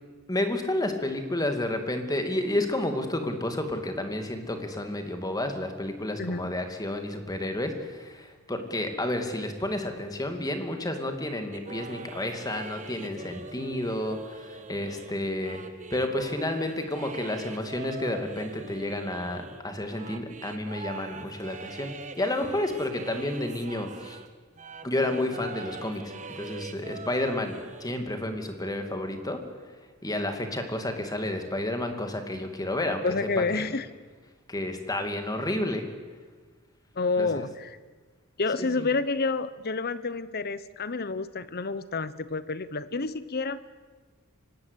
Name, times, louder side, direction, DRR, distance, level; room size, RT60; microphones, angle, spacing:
voice 1, 0.3-15.6 15.9-24.2 24.8-29.4 30.0-33.0 33.5-33.6 34.5-35.9 37.2-37.3 38.6-38.9, left 1 dB, 15° left, 6 dB, 2.4 m, -31 dB
voice 2, 6.2-6.6 33.0-33.9 36.9-37.8 38.4-43.6, left 3 dB, 45° left, 15 dB, 1.0 m, -29 dB
sound 1, 11.5-24.3 24.6-28.0, right 3 dB, 35° right, 1.3 m, -43 dB
24.5 x 18.5 x 8.3 m, 1.4 s
head